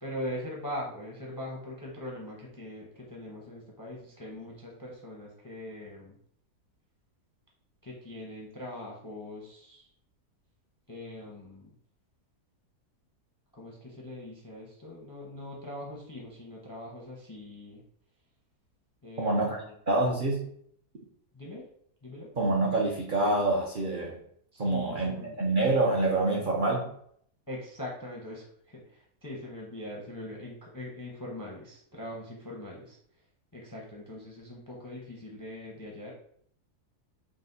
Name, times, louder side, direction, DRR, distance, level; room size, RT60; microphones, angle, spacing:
voice 1, 0.0-6.2 7.8-9.9 10.9-11.7 13.5-17.8 19.0-19.7 21.3-21.7 22.0-22.3 24.5-25.4 27.5-33.0 33.5-36.1, left 1 dB, 25° left, -2 dB, 0.4 m, -41 dB
voice 2, 19.2-20.5 22.4-24.2 24.6-26.9, right 2 dB, 65° right, -2 dB, 0.5 m, -27 dB
4.8 x 2.2 x 3.8 m, 0.65 s
omnidirectional pair, 1.7 m